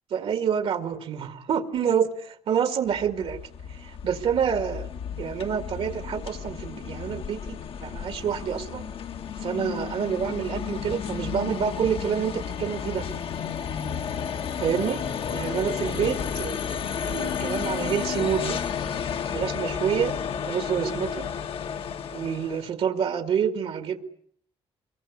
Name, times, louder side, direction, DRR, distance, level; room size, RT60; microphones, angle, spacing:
voice 1, 0.1-3.4 3.7-4.9 5.2-8.9 9.4-13.1 14.6-15.1 15.3-18.6 19.3-20.2 20.5-21.3 22.1-24.0, right 8 dB, 65° right, 9 dB, 1.9 m, -28 dB
sound 1, 2.9-22.7, left 7 dB, 60° left, 1.4 m, -32 dB
23.5 x 22.5 x 9.5 m, 0.64 s
cardioid pair, 145°, 11 cm